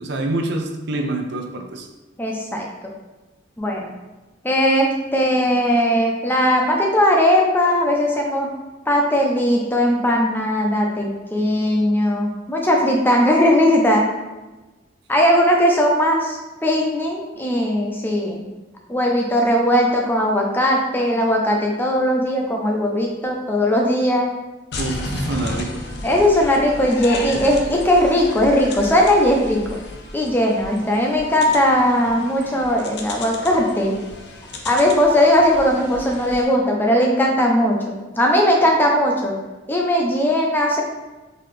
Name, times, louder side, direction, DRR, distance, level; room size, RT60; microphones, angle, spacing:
voice 1, 0.0-1.9 24.8-25.8, right 2 dB, 60° right, 3 dB, 0.5 m, -26 dB
voice 2, 2.2-2.9 3.6-3.9 4.4-8.5 8.9-14.0 15.1-18.4 18.9-24.3 26.0-29.6 30.1-34.0 34.6-39.3 39.7-40.8, equal, 10° left, 0 dB, 0.5 m, -18 dB
sound 1, 24.7-36.5, left 2 dB, 55° left, 0.5 m, -33 dB
3.9 x 2.8 x 3.2 m, 1.1 s
head